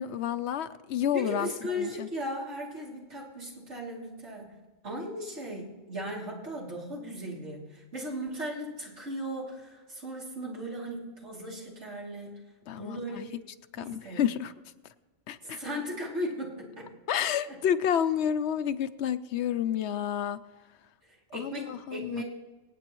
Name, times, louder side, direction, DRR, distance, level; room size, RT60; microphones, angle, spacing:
voice 1, 0.0-1.5 1.8-2.1 12.7-13.2 13.7-14.5 15.3-15.6 17.1-20.4 21.3-22.2, left 9 dB, 75° left, 12 dB, 0.9 m, -30 dB
voice 2, 1.1-4.5 4.8-12.4 12.8-13.4 13.8-14.2 15.4-16.9 17.5-17.6 21.3-22.2, equal, 80° right, -3 dB, 3.2 m, -37 dB
24.5 x 9.1 x 3.0 m, 1.3 s
omnidirectional pair, 1.2 m